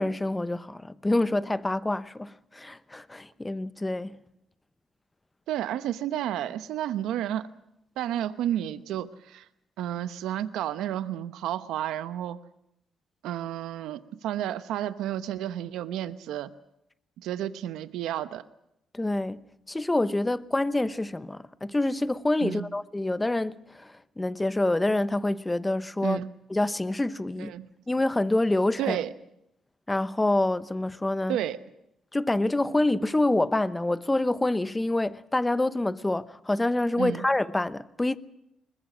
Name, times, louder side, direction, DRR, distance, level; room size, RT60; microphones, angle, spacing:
voice 1, 0.0-4.2 18.9-19.4 19.7-26.2 26.5-27.5 27.9-29.0 29.9-31.4 32.1-38.2, left 2 dB, 15° left, 0.9 m, -27 dB
voice 2, 5.5-7.5 8.0-9.4 9.8-12.4 13.2-16.5 17.2-18.4 22.4-22.7 26.0-26.3 27.4-27.7 28.8-29.1 31.3-31.6 37.0-37.2, right 11 dB, 85° right, 0.9 m, -31 dB
21.5 x 21.0 x 7.6 m
cardioid pair, 90°, 0 cm